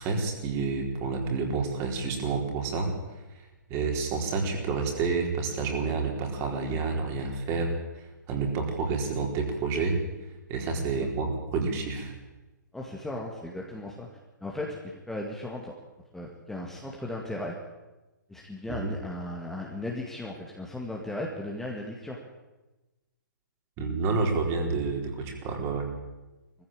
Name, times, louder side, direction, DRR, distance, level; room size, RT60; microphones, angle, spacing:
voice 1, 0.0-2.9 3.7-7.7 8.3-10.0 10.5-12.1 18.7-18.9 23.8-25.9, right 4 dB, 25° right, 2 dB, 4.3 m, -29 dB
voice 2, 12.7-14.1 14.4-15.7 16.1-17.6 18.3-22.2, left 1 dB, 5° left, -1 dB, 2.1 m, -36 dB
20.5 x 15.0 x 8.9 m, 1.1 s
figure-of-eight pair, 125°, 10 cm